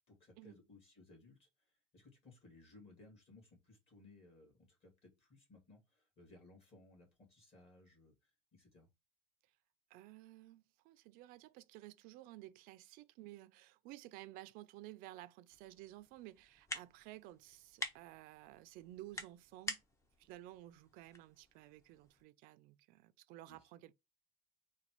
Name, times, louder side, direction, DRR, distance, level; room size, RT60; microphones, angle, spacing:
voice 1, 0.1-8.9 23.5-23.7, left 2 dB, 35° left, 2.3 m, -62 dB
voice 2, 9.9-19.8 20.2-23.9, right 16 dB, 60° right, 0.5 m, -54 dB
sound 1, 15.5-22.2, left 2 dB, 15° left, 0.7 m, -49 dB
4.0 x 2.3 x 4.5 m
cardioid pair, 140°, 17 cm